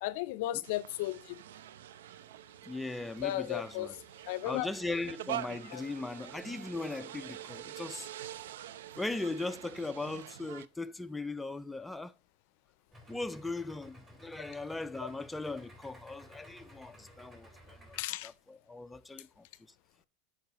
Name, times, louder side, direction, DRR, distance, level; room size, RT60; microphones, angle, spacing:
voice 1, 0.0-1.4 3.2-3.9 4.3-4.7 5.7-5.8 17.9-18.3, left 15 dB, 65° left, 0.4 m, -34 dB
sound 1, 0.6-10.7, right 12 dB, 80° right, 0.3 m, -45 dB
voice 2, 2.6-3.9 4.4-8.1 9.0-12.1 13.1-18.0 18.2-19.5, left 2 dB, 5° left, 0.3 m, -39 dB
Idling, 12.9-18.0, equal, 20° right, 3.3 m, -55 dB
11.5 x 4.7 x 2.9 m
hypercardioid pair, 110°, 0 cm